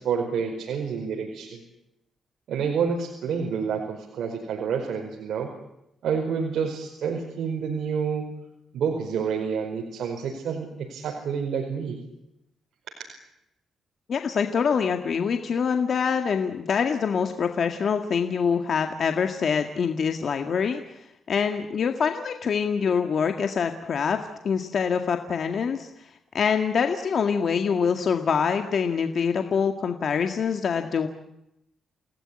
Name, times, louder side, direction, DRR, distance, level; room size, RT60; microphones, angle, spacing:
voice 1, 0.0-1.6 2.5-5.5 6.0-8.3 8.7-12.0, right 6 dB, 75° right, 1 dB, 5.0 m, -28 dB
voice 2, 14.1-26.1 26.3-31.1, left 6 dB, 55° left, 5 dB, 1.9 m, -25 dB
29.5 x 18.5 x 9.9 m, 0.85 s
cardioid pair, 115°, 0 cm